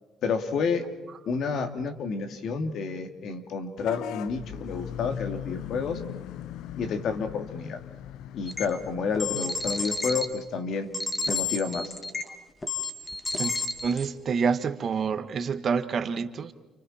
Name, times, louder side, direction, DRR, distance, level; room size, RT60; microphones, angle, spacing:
voice 1, 0.2-0.8 1.3-6.0 6.8-7.8 8.3-10.9 11.3-11.9, left 5 dB, 65° left, 7 dB, 2.5 m, -30 dB
Vehicle horn car horn honking / Bus, 3.8-9.9, left 11 dB, 80° left, 0.7 m, -39 dB
sound 1, 8.5-8.6 9.1-10.2 10.9-12.3 12.6-14.0, left 4 dB, 20° left, 2.1 m, -30 dB
voice 2, 13.8-16.5, right 5 dB, 45° right, 10 dB, 1.4 m, -27 dB
30.0 x 29.5 x 4.4 m, 1.2 s
cardioid pair, 105°, 0 cm